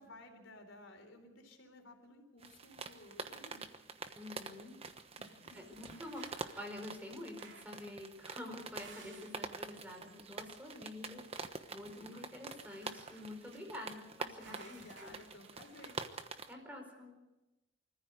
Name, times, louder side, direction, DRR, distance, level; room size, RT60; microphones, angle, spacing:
voice 1, 0.0-3.7 5.2-5.8 12.0-12.4 14.5-16.0, left 2 dB, 85° left, 4 dB, 4.0 m, -56 dB
sound 1, 2.4-16.5, right 4 dB, 30° right, 1.1 m, -47 dB
voice 2, 4.2-4.8 5.5-15.1 16.5-17.2, left 1 dB, 10° right, 2 dB, 4.8 m, -48 dB
sound 2, 5.5-6.7 7.4-7.8 8.3-9.5 12.6-13.6 14.4-16.0, right 5 dB, 70° right, 3.0 m, -58 dB
25.0 x 15.0 x 8.2 m, 1.0 s
head